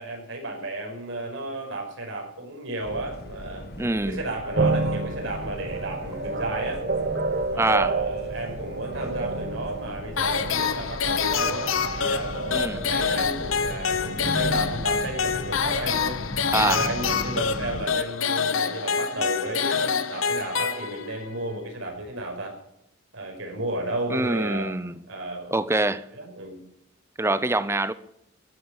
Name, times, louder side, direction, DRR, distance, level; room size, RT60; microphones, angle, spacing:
voice 1, 0.0-3.6 4.1-6.8 7.5-12.3 12.7-16.2 16.5-22.6 23.1-24.7 25.1-25.7 26.1-26.6, right 1 dB, 75° right, 5.5 m, -33 dB
sound 1, 2.8-17.9, left 1 dB, 50° left, 1.4 m, -38 dB
voice 2, 3.8-4.2 7.6-7.9 12.5-12.9 16.5-16.8 24.1-25.0 25.5-26.1 27.2-27.9, right 2 dB, 15° right, 0.7 m, -24 dB
sound 2, 4.5-16.0, right 3 dB, 50° right, 1.2 m, -30 dB
sound 3, 10.2-21.3, left 6 dB, 90° left, 1.1 m, -26 dB
14.5 x 10.0 x 7.1 m
head